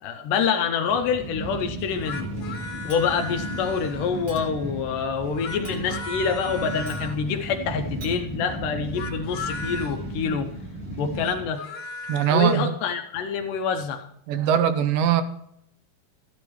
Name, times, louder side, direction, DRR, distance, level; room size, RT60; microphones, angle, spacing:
voice 1, 0.0-2.3 2.8-10.5 11.0-11.6 12.3-14.1, left 6 dB, 75° left, 6 dB, 2.0 m, -26 dB
sound 1, 0.9-11.5, right 1 dB, 15° right, 2.6 m, -35 dB
sound 2, 1.9-4.3 5.2-7.3 8.8-10.0 11.0-12.7, left 3 dB, 60° left, 2.1 m, -37 dB
Chink clink, 2.9-3.4 4.3-4.7 5.6-6.1 6.8-7.1 8.0-8.2, right 3 dB, 45° right, 1.3 m, -45 dB
voice 2, 12.1-12.7 14.3-15.2, right 9 dB, 75° right, 11 dB, 2.2 m, -21 dB
13.0 x 10.5 x 3.1 m, 0.71 s
omnidirectional pair, 4.5 m